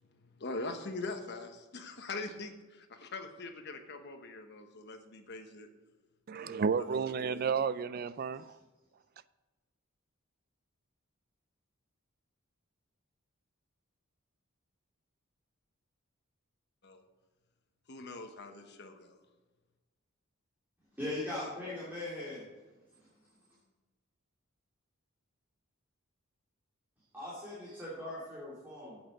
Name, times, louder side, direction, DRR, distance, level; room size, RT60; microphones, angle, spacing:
voice 1, 0.1-5.7 6.3-7.4 16.8-17.0 17.9-19.2, left 3 dB, 55° left, 1.1 m, -43 dB
voice 2, 6.3-8.6, right 6 dB, 45° right, 0.4 m, -32 dB
voice 3, 21.0-22.4 27.1-29.0, left 1 dB, 10° right, 2.7 m, -39 dB
8.7 x 8.1 x 5.2 m
head